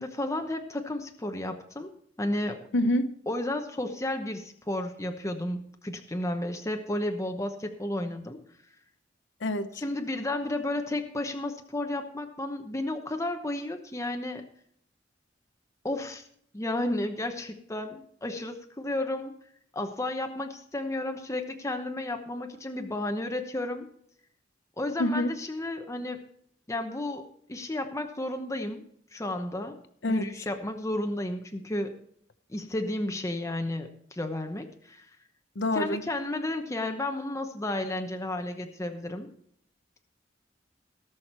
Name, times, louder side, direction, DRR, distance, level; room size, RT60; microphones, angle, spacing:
voice 1, 0.0-1.9 2.2-2.6 3.3-8.4 9.8-14.5 15.8-16.2 16.5-19.3 19.7-23.9 24.8-26.2 26.7-28.8 29.1-29.8 30.1-32.0 32.5-35.2 35.7-39.3, left 1 dB, 15° left, 5 dB, 0.9 m, -32 dB
voice 2, 2.7-3.1 9.4-9.8 25.0-25.3 30.0-30.3 35.6-36.0, left 1 dB, 70° left, 11 dB, 0.9 m, -26 dB
18.0 x 6.4 x 4.3 m, 0.68 s
head